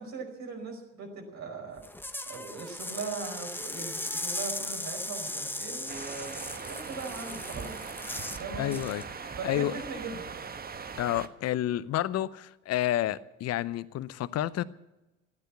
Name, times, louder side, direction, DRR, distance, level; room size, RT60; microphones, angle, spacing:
voice 1, 0.0-1.8 2.2-7.8 8.4-8.8 9.4-10.3, right 4 dB, 50° right, 5.1 m, -39 dB
sound 1, 1.8-8.4 8.7-9.0, left 1 dB, 5° left, 1.1 m, -37 dB
sound 2, 5.9-11.3, right 5 dB, 25° right, 1.2 m, -40 dB
voice 2, 8.6-9.0 9.4-9.7 11.0-14.6, left 13 dB, 45° left, 0.8 m, -30 dB
15.0 x 9.9 x 9.5 m
hypercardioid pair, 65°, 37 cm